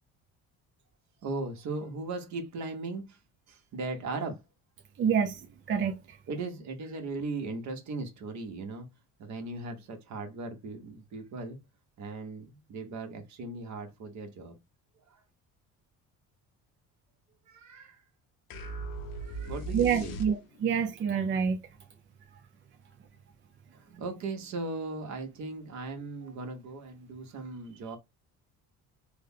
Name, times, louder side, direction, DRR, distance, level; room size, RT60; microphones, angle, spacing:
voice 1, 1.2-3.2 3.5-4.4 6.3-8.9 9.2-11.6 12.0-14.5 15.1-15.2 17.5-18.0 19.2-20.2 23.7-28.0, right 3 dB, 60° right, 1.3 m, -38 dB
voice 2, 5.0-5.4 5.7-6.2 19.7-21.6, right 7 dB, 35° right, 0.5 m, -27 dB
sound 1, 18.5-20.8, right 3 dB, 80° left, 1.0 m, -38 dB
3.5 x 2.2 x 3.6 m
cardioid pair, 105°, 33 cm